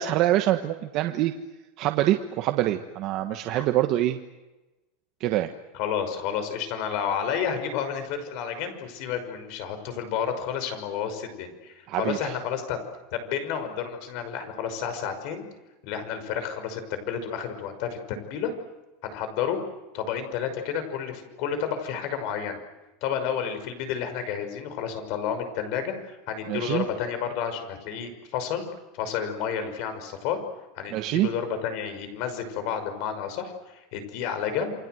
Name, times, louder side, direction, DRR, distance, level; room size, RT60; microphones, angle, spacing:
voice 1, 0.0-1.3 1.8-4.2 5.2-5.5 11.9-12.4 26.5-26.8 30.9-31.3, right 14 dB, 40° right, 6 dB, 1.4 m, -25 dB
voice 2, 5.7-12.8 13.1-15.4 15.8-18.5 19.0-19.6 19.9-22.6 23.0-28.7 28.9-30.4 30.7-34.7, left 8 dB, 45° left, 9 dB, 5.8 m, -31 dB
29.0 x 24.5 x 8.0 m, 1.1 s
supercardioid pair, 175°, 0 cm